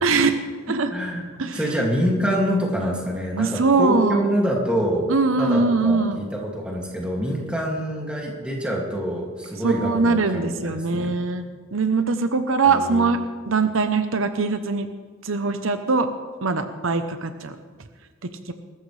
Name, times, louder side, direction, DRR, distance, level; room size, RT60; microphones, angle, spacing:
voice 1, 0.0-0.9 1.4-1.6 3.4-4.2 5.1-6.2 9.6-13.2 13.5-14.9 15.2-16.1 16.4-17.5 18.2-18.5, right 4 dB, 80° right, 8 dB, 0.9 m, -22 dB
voice 2, 0.9-5.1 5.4-11.2 12.7-13.1, equal, 5° right, -3 dB, 2.4 m, -26 dB
21.0 x 13.5 x 3.4 m, 1.5 s
head